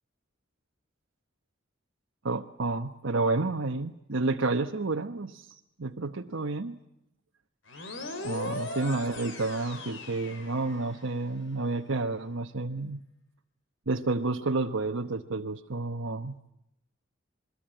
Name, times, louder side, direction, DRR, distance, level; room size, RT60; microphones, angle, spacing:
voice 1, 2.2-6.8 8.2-13.0 13.9-16.3, right 3 dB, 80° right, 3 dB, 1.1 m, -30 dB
sound 1, 7.7-11.2, left 2 dB, 70° left, 4.4 m, -39 dB
27.5 x 22.0 x 9.0 m, 0.86 s
head